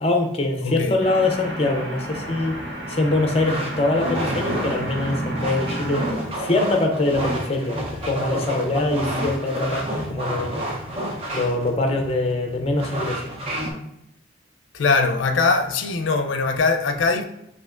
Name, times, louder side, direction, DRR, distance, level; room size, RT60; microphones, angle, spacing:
voice 1, 0.0-2.6 2.9-10.5 11.3-13.2, left 2 dB, 30° left, 0.6 m, -23 dB
voice 2, 0.6-1.0 14.7-17.2, left 4 dB, 90° left, 0.5 m, -21 dB
sound 1, 1.0-6.1, right 1 dB, 70° right, 1.1 m, -31 dB
sound 2, 2.2-13.7, right 1 dB, 30° right, 0.7 m, -30 dB
5.4 x 2.8 x 2.4 m
head